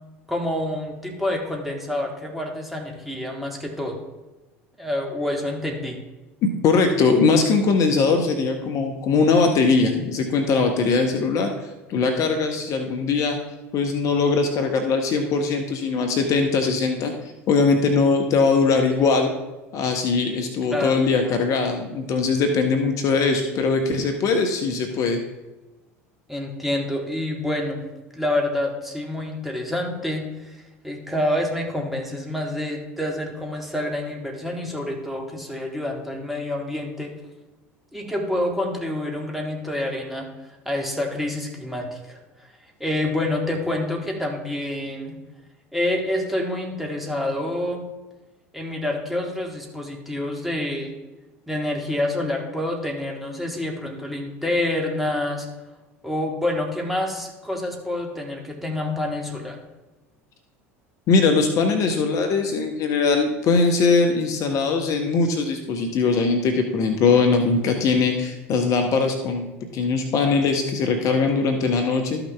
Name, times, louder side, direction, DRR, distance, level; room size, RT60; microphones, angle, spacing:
voice 1, 0.3-4.0 4.8-6.0 20.7-21.0 26.3-27.8 28.1-30.6 30.8-37.1 37.9-40.3 40.7-42.2 42.8-45.1 45.7-47.8 48.5-50.9 51.5-55.5 56.0-59.6, left 1 dB, ahead, 0 dB, 1.9 m, -27 dB
voice 2, 6.6-11.5 11.9-13.4 13.7-17.1 17.5-19.3 19.7-25.2 61.1-69.5 69.7-72.2, left 4 dB, 45° left, 5 dB, 1.1 m, -21 dB
13.0 x 5.9 x 3.4 m, 1.1 s
figure-of-eight pair, 70°, 7 cm